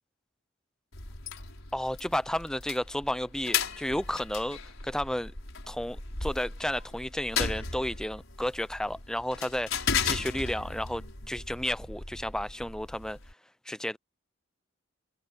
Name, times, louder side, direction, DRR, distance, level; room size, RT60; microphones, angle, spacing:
sound 1, 0.9-13.3, left 6 dB, 75° left, 5.4 m, -36 dB
voice 1, 1.7-5.3 5.7-13.2 13.7-14.0, left 1 dB, 5° left, 0.3 m, -32 dB
head